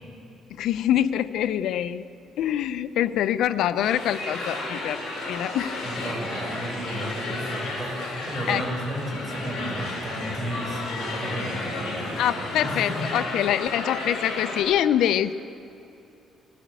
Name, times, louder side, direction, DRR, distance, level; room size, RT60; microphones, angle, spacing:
voice 1, 0.5-2.0 2.4-5.0 5.3-5.8 8.5-8.6 12.2-15.3, left 11 dB, 75° left, 13 dB, 0.6 m, -25 dB
sound 1, 3.8-14.6, left 2 dB, 60° left, 6.5 m, -33 dB
voice 2, 5.8-13.0, right 1 dB, 25° right, -3 dB, 5.7 m, -33 dB
20.0 x 17.0 x 8.3 m, 2.7 s
cardioid pair, 165°, 0 cm